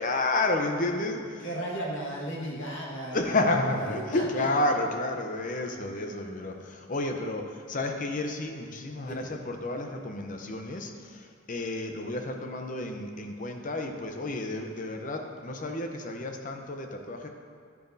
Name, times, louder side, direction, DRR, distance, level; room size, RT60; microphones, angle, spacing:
voice 1, 0.0-1.4 3.1-17.3, left 2 dB, 40° left, 4 dB, 0.7 m, -31 dB
voice 2, 1.1-4.5 9.0-9.3, right 1 dB, 60° left, -3 dB, 1.7 m, -36 dB
11.0 x 8.9 x 2.7 m, 2.2 s
head